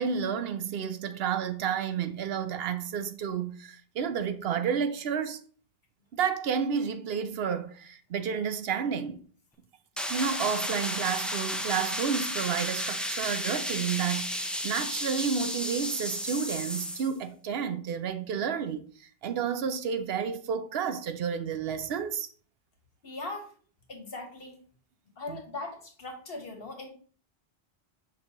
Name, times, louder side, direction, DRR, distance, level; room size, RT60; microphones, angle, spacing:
voice 1, 0.0-5.4 6.1-9.2 10.1-18.9 19.2-22.3 25.3-25.4, right 7 dB, 75° right, 0.8 m, -31 dB
sound 1, 10.0-17.1, equal, ahead, 0.4 m, -33 dB
voice 2, 23.0-23.5 23.9-24.6 25.2-26.9, left 2 dB, 70° left, 1.5 m, -39 dB
6.5 x 5.4 x 2.9 m
omnidirectional pair, 1.0 m